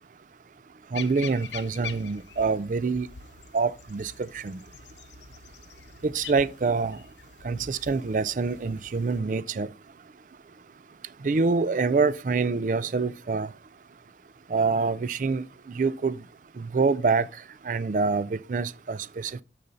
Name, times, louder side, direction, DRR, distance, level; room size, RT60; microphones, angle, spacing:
sound 1, 0.9-9.2, left 7 dB, 85° left, 0.7 m, -44 dB
voice 1, 0.9-3.1 3.5-4.6 6.0-7.0 7.4-9.7 11.2-13.5 14.5-15.4 15.8-16.2 16.6-17.3 17.6-19.3, right 4 dB, 45° right, 0.4 m, -26 dB
6.9 x 6.6 x 4.0 m
head